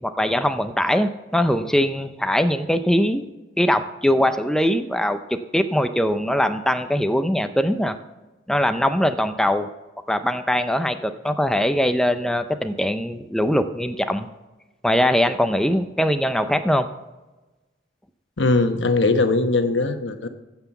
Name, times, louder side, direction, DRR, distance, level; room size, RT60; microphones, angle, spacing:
voice 1, 0.0-3.2 3.6-8.0 8.5-9.7 10.1-14.3 14.8-16.9, equal, 5° left, 9 dB, 0.5 m, -21 dB
voice 2, 18.4-20.3, left 3 dB, 75° left, 8 dB, 1.1 m, -20 dB
15.0 x 5.8 x 7.0 m, 1.1 s
head